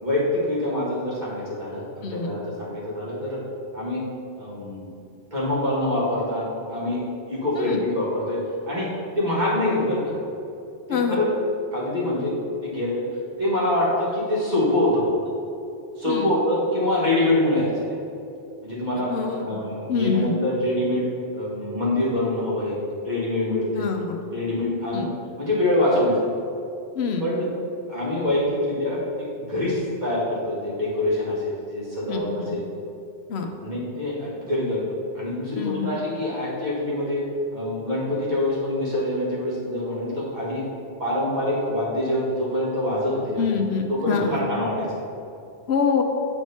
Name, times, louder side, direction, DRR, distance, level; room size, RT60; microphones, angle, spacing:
voice 1, 0.0-3.4 3.7-4.0 4.4-4.9 5.3-7.0 7.3-8.9 9.2-10.1 10.9-11.2 11.7-12.3 12.6-13.0 13.4-15.1 16.0-17.8 18.6-21.0 21.3-22.8 23.0-23.9 24.3-25.1 25.4-26.1 27.2-27.5 27.9-32.6 33.6-34.8 35.1-40.7 41.0-43.4 43.9-45.0, left 1 dB, 40° right, -7 dB, 1.9 m, -25 dB
voice 2, 10.9-11.2 16.1-16.3 19.1-19.5 19.9-20.3 23.8-24.2 24.9-25.1 26.9-27.2 32.1-32.6 33.3-33.5 35.5-35.9 43.4-44.4 45.7-46.0, left 5 dB, 75° left, 4 dB, 0.9 m, -25 dB
8.1 x 4.6 x 4.2 m, 2.7 s
omnidirectional pair, 1.1 m